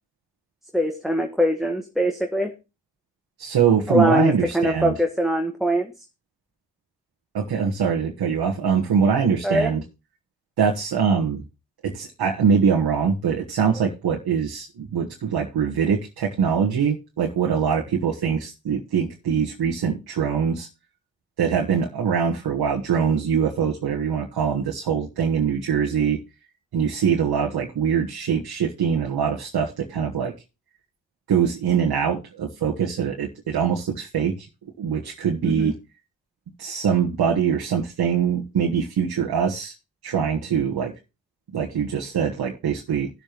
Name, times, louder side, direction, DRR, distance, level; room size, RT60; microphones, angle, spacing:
voice 1, 0.7-2.5 3.9-5.9 9.4-9.7 35.4-35.7, equal, ahead, 2 dB, 1.4 m, -22 dB
voice 2, 3.4-4.9 7.3-9.8 10.6-11.4 11.8-20.7 21.4-26.2 26.7-30.3 31.3-34.5 34.8-35.7 36.6-39.7 40.0-40.9 41.5-43.1, right 7 dB, 75° right, 0 dB, 1.4 m, -23 dB
17.5 x 7.1 x 3.0 m, 0.28 s
supercardioid pair, 45°, 38 cm